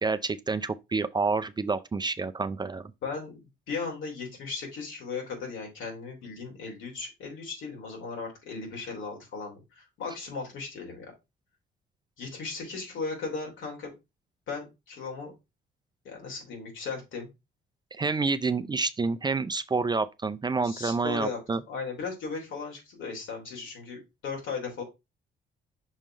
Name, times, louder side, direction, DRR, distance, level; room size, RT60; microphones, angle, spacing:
voice 1, 0.0-2.9 18.0-21.6, right 4 dB, 20° right, 0.4 m, -28 dB
voice 2, 3.0-11.1 12.2-13.9 14.5-15.3 16.0-17.3 20.6-21.4 21.7-24.0 24.2-24.8, left 4 dB, 80° left, 3.0 m, -37 dB
6.3 x 3.7 x 4.2 m
cardioid pair, 90°, 20 cm